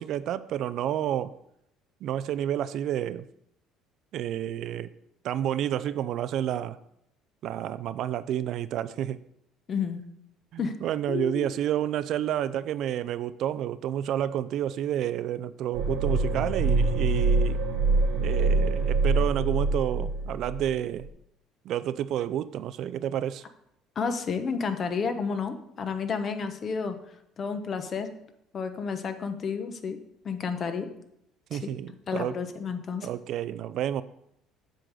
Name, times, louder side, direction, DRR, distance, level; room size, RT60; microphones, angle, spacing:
voice 1, 0.0-1.3 2.0-3.3 4.1-4.9 5.2-6.8 7.4-9.2 10.5-17.6 18.2-21.1 21.6-23.4 31.5-32.4 33.0-34.0, right 11 dB, 60° right, 15 dB, 0.3 m, -30 dB
voice 2, 9.7-10.0 10.6-10.8 11.1-11.5 24.0-27.0 27.4-28.1 28.5-30.0 30.2-30.9 31.5-31.6 32.1-33.1, left 5 dB, 40° left, 8 dB, 0.9 m, -31 dB
sound 1, 15.7-20.7 21.0-21.1, right 3 dB, 90° right, 1.6 m, -25 dB
7.6 x 3.8 x 6.5 m, 0.76 s
cardioid pair, 115°, 0 cm